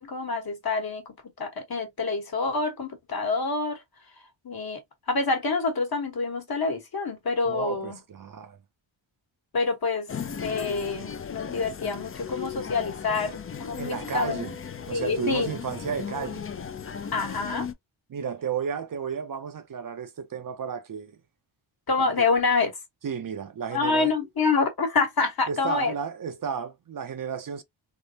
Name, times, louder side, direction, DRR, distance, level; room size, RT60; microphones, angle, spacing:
voice 1, 0.0-3.8 4.4-4.8 5.1-8.0 9.5-10.1 10.4-14.4 14.9-15.5 17.1-17.7 21.9-22.7 23.7-25.9, left 4 dB, 50° left, 1.2 m, -27 dB
voice 2, 7.5-8.6 13.8-14.5 14.9-16.4 18.1-21.2 22.0-22.3 23.0-24.1 25.5-27.6, right 7 dB, 45° right, 0.5 m, -33 dB
sound 1, 10.1-17.7, left 7 dB, 30° left, 0.4 m, -36 dB
3.6 x 2.0 x 2.6 m
cardioid pair, 75°, 47 cm